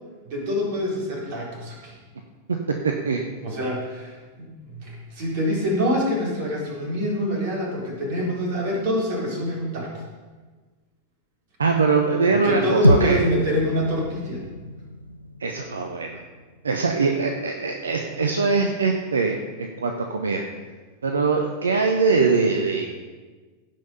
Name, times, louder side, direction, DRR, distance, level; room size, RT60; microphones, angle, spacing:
voice 1, 0.2-2.0 3.4-10.0 12.3-14.4, equal, 50° right, -4 dB, 4.2 m, -26 dB
voice 2, 2.8-3.2 11.6-13.2 15.4-16.2 16.6-20.4 21.0-22.8, right 4 dB, 70° right, 3 dB, 0.8 m, -22 dB
sound 1, 12.8-17.2, equal, 90° left, 0.4 m, -26 dB
16.0 x 5.8 x 5.3 m, 1.3 s
figure-of-eight pair, 90°, 0 cm